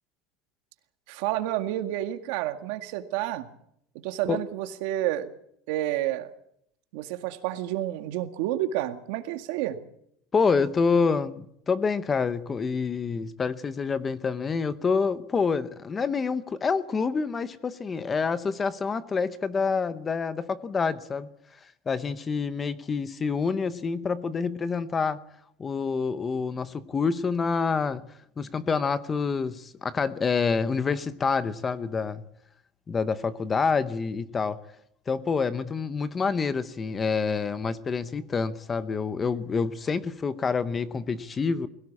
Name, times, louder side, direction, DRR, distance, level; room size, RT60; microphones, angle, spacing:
voice 1, 1.1-3.5 4.0-5.3 5.7-6.3 6.9-9.8, right 13 dB, 65° right, 8 dB, 1.9 m, -29 dB
voice 2, 10.3-21.3 21.6-25.2 25.6-28.0 28.4-32.2 32.9-34.6 35.1-41.7, left 5 dB, 15° left, 14 dB, 0.7 m, -27 dB
21.5 x 17.0 x 8.5 m, 0.75 s
cardioid pair, 170°, 0 cm